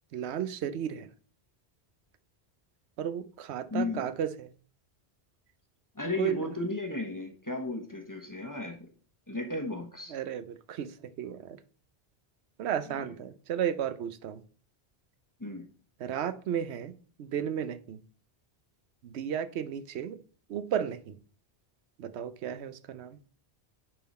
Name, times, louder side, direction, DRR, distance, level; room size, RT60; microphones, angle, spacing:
voice 1, 0.1-1.1 3.0-4.5 6.2-6.4 10.1-11.6 12.6-14.4 16.0-18.0 19.0-20.2 20.5-21.2 22.0-23.2, right 9 dB, 80° right, 13 dB, 0.9 m, -34 dB
voice 2, 3.7-4.1 5.9-8.9 9.3-10.1 15.4-15.7, left 2 dB, 20° left, 4 dB, 0.9 m, -34 dB
9.7 x 3.8 x 4.2 m, 0.41 s
omnidirectional pair, 1.1 m